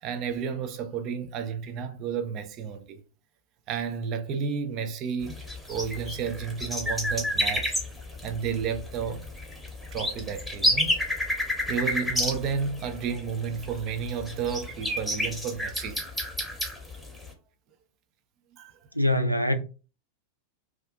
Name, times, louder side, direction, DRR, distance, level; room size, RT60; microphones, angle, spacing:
voice 1, 0.0-3.0 3.7-7.8 8.2-9.2 9.9-10.9 11.7-16.0 18.6-18.8, right 6 dB, 35° right, 0.4 m, -32 dB
sound 1, 5.2-17.3, equal, ahead, 0.8 m, -30 dB
voice 2, 19.0-19.5, left 1 dB, 90° left, 0.3 m, -23 dB
2.4 x 2.3 x 2.4 m
figure-of-eight pair, 90°, 0 cm